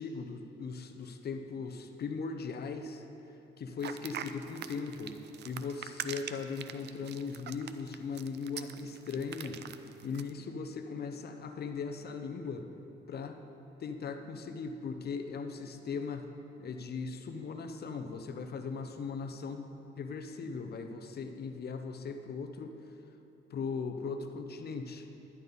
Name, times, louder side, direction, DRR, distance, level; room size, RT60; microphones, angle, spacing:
voice 1, 0.0-3.0 3.6-5.2 5.4-9.6 10.0-12.7 13.1-13.4 13.8-16.3 16.6-22.8 23.5-25.1, left 5 dB, 55° left, 6 dB, 0.9 m, -39 dB
sound 1, 3.8-10.3, right 9 dB, 60° right, 0.5 m, -43 dB
11.0 x 11.0 x 4.1 m, 2.9 s
cardioid pair, 90°, 20 cm